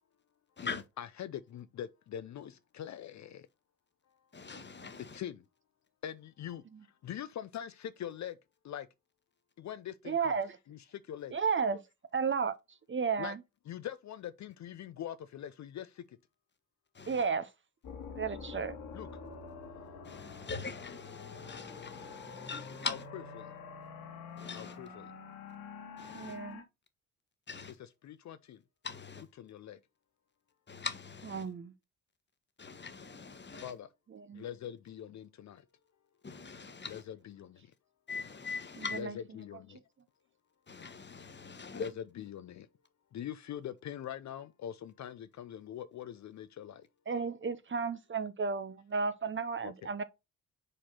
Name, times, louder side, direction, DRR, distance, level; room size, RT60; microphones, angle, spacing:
voice 1, 0.6-3.5 5.1-5.4 6.0-6.6 7.0-8.4 8.6-8.9 9.6-10.4 10.7-11.3 13.2-13.3 13.7-16.2 18.9-19.1 22.8-23.0 23.4-23.6 24.5-25.1 27.8-28.6 29.4-29.8 33.5-33.9 34.3-35.6 36.9-37.7 38.9-39.8 41.7-42.7 43.1-46.9 49.6-49.9, left 10 dB, 45° left, 0.6 m, -43 dB
voice 2, 4.3-5.2 16.9-17.2 20.0-23.0 24.4-24.8 26.0-26.4 27.5-27.7 28.8-29.2 30.7-31.5 32.6-33.7 36.2-37.0 38.1-39.0 40.7-41.9, left 4 dB, 30° left, 1.2 m, -42 dB
voice 3, 10.1-10.6 11.3-11.8 12.1-12.5 12.9-13.4 17.1-17.5 18.1-18.8 26.1-26.6 31.3-31.7 34.1-34.4 47.1-50.0, right 5 dB, 30° right, 0.7 m, -33 dB
sound 1, 17.8-26.6, left 5 dB, 60° left, 1.8 m, -47 dB
5.0 x 4.2 x 5.5 m
hypercardioid pair, 45°, 38 cm